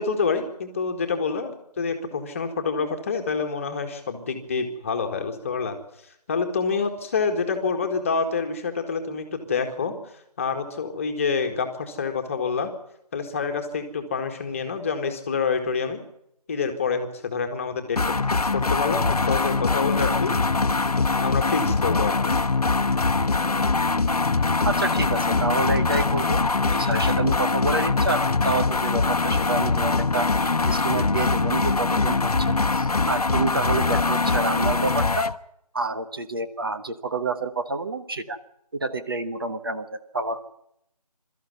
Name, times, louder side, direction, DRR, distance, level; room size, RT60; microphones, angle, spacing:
voice 1, 0.0-5.8 6.3-10.0 10.4-12.7 13.1-16.0 16.5-18.1 18.5-20.3 21.2-22.3, left 5 dB, 20° left, 6 dB, 1.9 m, -27 dB
sound 1, 18.0-35.4, left 3 dB, 65° left, 1.1 m, -22 dB
voice 2, 24.6-35.3 35.7-38.4 38.7-40.4, right 3 dB, 35° right, 9 dB, 1.2 m, -28 dB
23.5 x 13.5 x 9.5 m, 0.77 s
figure-of-eight pair, 170°, 21 cm